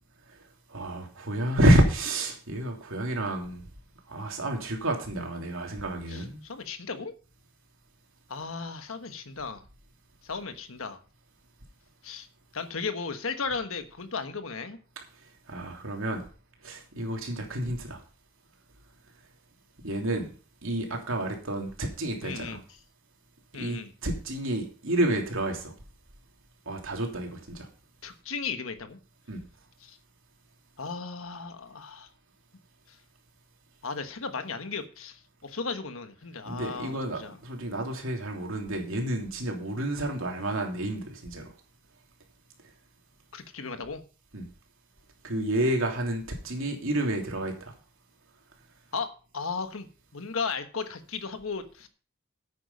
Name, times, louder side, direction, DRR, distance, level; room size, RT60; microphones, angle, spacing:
voice 1, 0.7-3.6 4.1-6.4 15.5-16.2 16.6-18.0 19.8-20.3 20.6-22.6 23.6-25.7 26.7-27.7 29.3-29.4 36.4-41.4 44.3-44.4 45.2-47.7, right 1 dB, 70° right, 3.1 m, -29 dB
voice 2, 6.1-7.1 8.3-9.6 10.2-11.0 12.0-12.3 12.5-14.8 22.2-22.6 23.5-23.9 28.0-29.0 29.8-30.0 30.8-32.1 32.9-33.0 33.8-37.3 43.3-44.0 48.9-49.9 50.1-51.9, left 4 dB, 70° left, 1.3 m, -35 dB
10.0 x 8.7 x 5.4 m
head